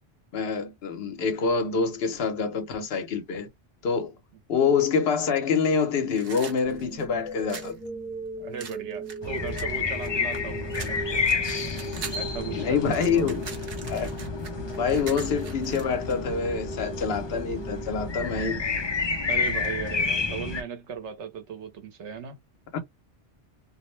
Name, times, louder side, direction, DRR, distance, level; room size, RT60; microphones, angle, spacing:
voice 1, 0.3-3.5 3.8-4.1 4.5-7.8 12.6-13.4 13.9-14.1 14.8-18.6 22.7-22.8, left 5 dB, 65° left, 0.9 m, -26 dB
sound 1, 6.1-7.8 8.6-10.4 10.7-12.3 12.6-16.2, right 5 dB, 60° right, 1.0 m, -42 dB
sound 2, 6.6-18.7, equal, 5° right, 0.9 m, -39 dB
voice 2, 8.4-11.2 11.7-11.8 12.1-13.3 19.3-22.4, right 6 dB, 90° right, 1.0 m, -37 dB
sound 3, 9.2-20.6, left 4 dB, 40° left, 0.4 m, -30 dB
2.5 x 2.1 x 3.0 m
omnidirectional pair, 1.1 m